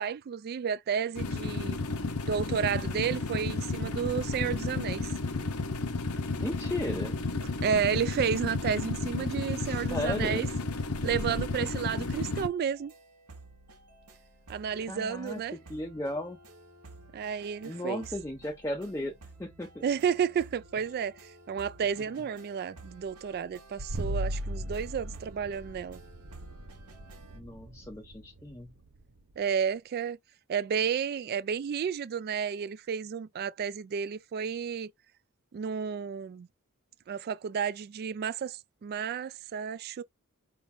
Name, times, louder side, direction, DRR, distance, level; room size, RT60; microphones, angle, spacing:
voice 1, 0.0-1.8 2.2-5.1 7.6-10.5 11.0-12.9 14.5-15.6 17.1-18.1 19.8-26.0 29.4-30.2 30.5-34.9 35.5-36.5 37.1-40.0, right 7 dB, 45° right, 0.3 m, -31 dB
sound 1, 1.2-12.5, left 3 dB, 80° left, 0.9 m, -32 dB
voice 2, 6.4-7.2 9.6-10.5 14.8-16.4 17.6-19.1 19.4-19.8 27.3-28.7, left 1 dB, 15° left, 0.5 m, -36 dB
sound 2, 12.2-27.4, right 2 dB, 80° right, 1.5 m, -53 dB
sound 3, 23.8-29.4, equal, 60° right, 0.7 m, -38 dB
4.9 x 3.6 x 2.6 m
head